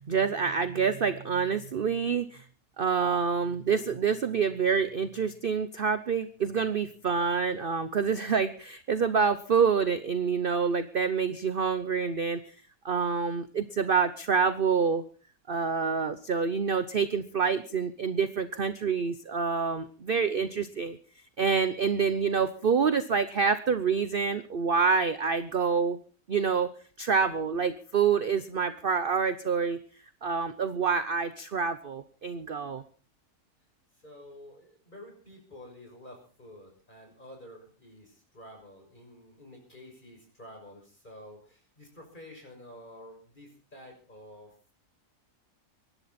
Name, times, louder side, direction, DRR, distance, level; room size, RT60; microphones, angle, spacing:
voice 1, 0.1-2.4 2.8-12.4 12.8-15.0 15.5-21.0 21.4-26.0 26.3-26.7 27.0-29.8 30.2-32.8, right 6 dB, 45° right, 11 dB, 0.9 m, -27 dB
voice 2, 33.9-44.7, left 1 dB, 30° left, 2 dB, 6.5 m, -50 dB
24.5 x 11.5 x 4.3 m, 0.39 s
omnidirectional pair, 1.6 m